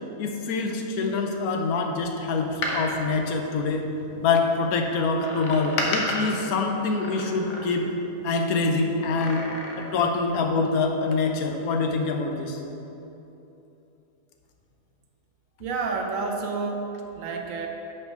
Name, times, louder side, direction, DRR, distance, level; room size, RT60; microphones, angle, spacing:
voice 1, 0.2-3.9 4.2-7.9 8.2-9.4 9.8-12.6, left 4 dB, 90° left, 3 dB, 1.2 m, -25 dB
Door, 2.4-4.2 5.2-8.0 9.0-10.1 10.4-10.5, left 1 dB, 70° left, 1.3 m, -33 dB
voice 2, 15.6-17.7, right 4 dB, 70° right, 3 dB, 1.1 m, -30 dB
6.0 x 5.6 x 5.0 m, 3.0 s
omnidirectional pair, 1.5 m